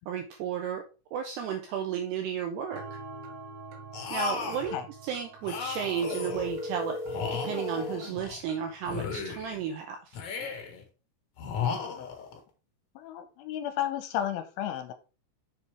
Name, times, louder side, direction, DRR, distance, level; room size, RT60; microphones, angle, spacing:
voice 1, 0.1-0.8 1.1-3.0 4.1-7.0 7.4-10.2, right 7 dB, 90° right, 5 dB, 2.4 m, -33 dB
sound 1, 2.7-8.7, right 4 dB, 70° right, 3.5 m, -47 dB
sound 2, 3.9-4.7 5.4-6.5 7.0-8.4 8.8-9.6 10.1-10.8 11.4-12.4, left 6 dB, 60° left, 1.9 m, -35 dB
sound 3, 6.0-8.1, left 1 dB, 35° right, 1.6 m, -36 dB
voice 2, 13.0-14.9, left 11 dB, 80° left, 8 dB, 3.0 m, -33 dB
7.1 x 7.1 x 3.4 m, 0.32 s
omnidirectional pair, 5.8 m